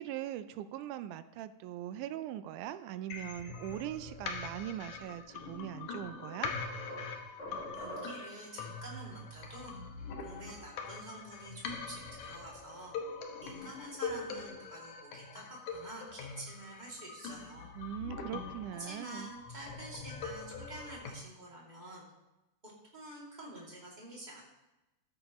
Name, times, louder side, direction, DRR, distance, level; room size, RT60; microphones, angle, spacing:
voice 1, 0.0-6.5 17.8-19.3, right 12 dB, 85° right, 12 dB, 2.0 m, -41 dB
sound 1, 3.1-21.1, left 4 dB, 75° left, 2.5 m, -43 dB
sound 2, 5.3-5.4 5.9-8.5, equal, 55° left, 3.6 m, -45 dB
voice 2, 7.7-9.7 10.2-12.9 13.4-17.7 18.8-22.0 22.6-24.4, right 1 dB, 15° right, -4 dB, 2.5 m, -48 dB
13.0 x 10.0 x 3.1 m, 0.98 s
omnidirectional pair, 3.5 m